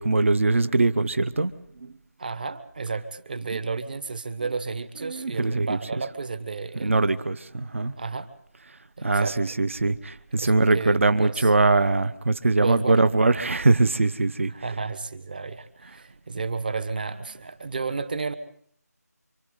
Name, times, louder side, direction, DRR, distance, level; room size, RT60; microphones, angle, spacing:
voice 1, 0.0-1.5 1.8-1.9 3.5-3.6 4.4-4.5 5.0-6.1 6.8-7.9 9.0-14.8, right 3 dB, 50° right, 13 dB, 1.0 m, -22 dB
voice 2, 2.2-7.1 8.0-8.3 9.0-9.6 10.4-11.5 12.6-13.0 14.5-18.3, right 4 dB, 30° right, 12 dB, 1.3 m, -32 dB
27.5 x 25.5 x 3.9 m, 0.65 s
figure-of-eight pair, 175°, 9 cm